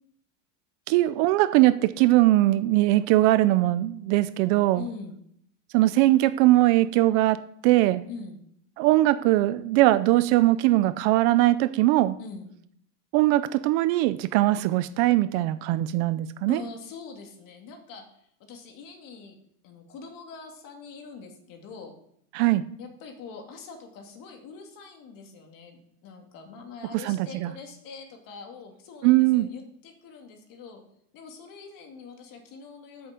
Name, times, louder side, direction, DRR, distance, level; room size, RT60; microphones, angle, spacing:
voice 1, 0.9-4.8 5.7-7.4 7.6-8.0 8.8-12.2 13.1-16.6 22.3-22.6 27.0-27.5 29.0-29.5, right 16 dB, 45° right, 14 dB, 0.5 m, -21 dB
voice 2, 4.7-5.2 8.1-8.4 12.2-12.5 16.5-19.4 19.6-22.0 22.8-30.8 31.1-33.1, left 5 dB, 45° left, 3 dB, 2.5 m, -43 dB
8.7 x 6.9 x 7.5 m, 0.71 s
supercardioid pair, 150°, 47 cm